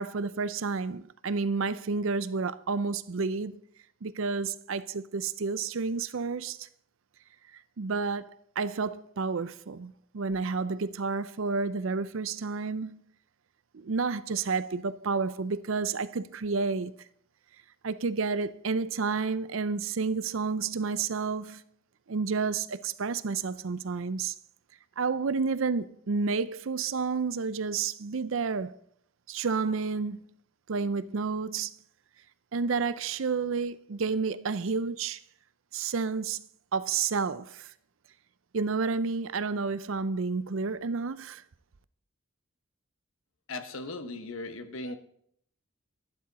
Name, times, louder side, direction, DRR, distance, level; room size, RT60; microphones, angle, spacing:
voice 1, 0.0-3.6 4.0-6.7 7.8-13.0 13.7-16.9 17.8-21.6 22.1-24.3 25.0-28.8 29.3-30.2 30.7-31.7 32.5-35.2 35.7-36.4 36.7-37.7 38.5-41.4, right 4 dB, 65° right, 0.5 m, -30 dB
voice 2, 43.5-44.9, left 2 dB, 70° left, 1.2 m, -38 dB
12.0 x 11.5 x 4.1 m
head